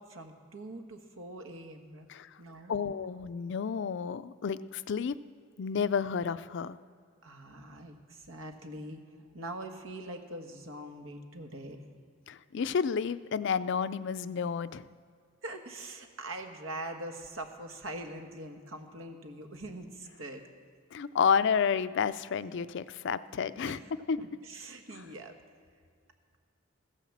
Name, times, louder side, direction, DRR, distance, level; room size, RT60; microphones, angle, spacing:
voice 1, 0.0-2.1 2.4-2.8 7.2-11.8 15.4-20.4 23.7-23.8 24.2-25.3, right 1 dB, 90° right, 5 dB, 1.5 m, -43 dB
voice 2, 2.7-5.1 5.6-6.8 12.3-14.9 20.9-23.8 24.1-24.2, left 6 dB, 60° left, 14 dB, 0.4 m, -30 dB
15.5 x 9.9 x 7.3 m, 2.2 s
head